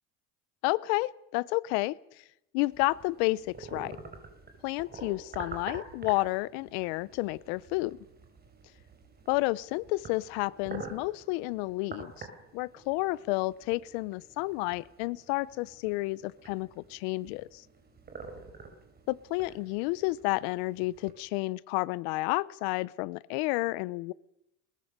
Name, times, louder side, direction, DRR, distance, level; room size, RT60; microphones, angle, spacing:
voice 1, 0.6-1.9 2.5-4.0 4.6-8.0 9.3-12.3 12.5-17.4 19.1-24.1, left 21 dB, 90° left, 21 dB, 0.7 m, -31 dB
sound 1, 2.7-21.1, right 3 dB, 30° right, 5.2 m, -48 dB
21.5 x 20.0 x 6.6 m, 0.85 s
cardioid pair, 115°, 31 cm